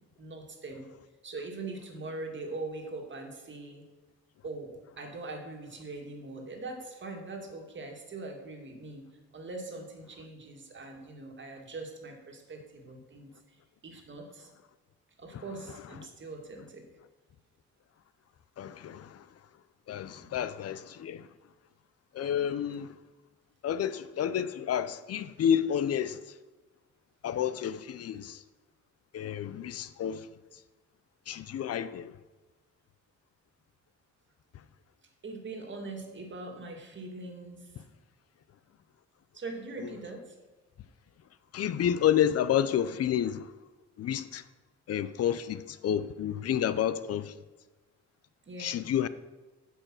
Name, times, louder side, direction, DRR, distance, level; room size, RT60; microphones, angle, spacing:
voice 1, 0.2-0.9 1.2-3.8 4.4-9.1 9.3-13.3 13.8-14.5 15.2-16.9 20.2-20.3 35.2-37.7 39.3-40.3 48.5-48.8, right 2 dB, 40° right, 2.0 m, -42 dB
voice 2, 18.6-19.3 19.9-21.3 22.1-22.9 23.6-26.4 27.2-28.4 29.1-30.3 31.3-32.2 34.5-34.6 39.8-39.9 41.5-43.5 44.0-44.4 44.9-47.3 48.6-49.1, left 9 dB, 55° left, 0.6 m, -30 dB
8.2 x 5.7 x 6.1 m
cardioid pair, 90°, 30 cm